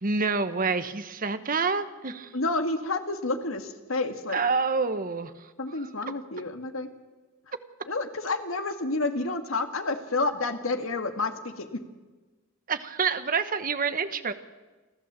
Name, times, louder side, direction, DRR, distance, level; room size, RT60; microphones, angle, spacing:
voice 1, 0.0-2.3 4.3-5.3 12.7-14.3, right 4 dB, 45° right, 10 dB, 1.1 m, -27 dB
voice 2, 2.3-4.4 5.6-6.9 7.8-11.8, left 3 dB, 80° left, 7 dB, 1.9 m, -29 dB
30.0 x 11.5 x 7.5 m, 1.2 s
head